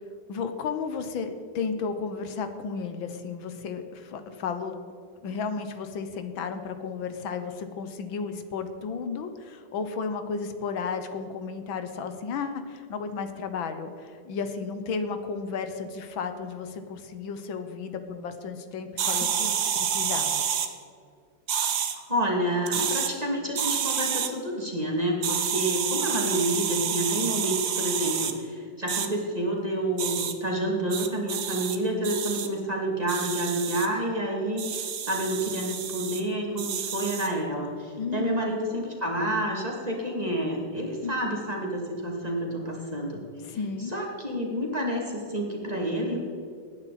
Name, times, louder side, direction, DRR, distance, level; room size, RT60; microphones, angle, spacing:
voice 1, 0.3-4.7 5.2-20.5 38.0-38.5 41.0-41.1 43.4-43.9, left 5 dB, 80° left, 8 dB, 1.8 m, -33 dB
sound 1, 19.0-20.7 21.5-22.0 22.6-23.1 23.6-24.3 25.2-28.3 28.9-29.1 30.0-30.3 30.9-31.8 32.0-32.5 33.1-33.9 34.6-36.2 36.6-37.3, right 8 dB, 60° right, 1.5 m, -29 dB
voice 2, 21.9-43.2 43.5-46.2, right 1 dB, 20° right, -1 dB, 2.4 m, -29 dB
19.0 x 9.9 x 4.2 m, 2.4 s
omnidirectional pair, 2.1 m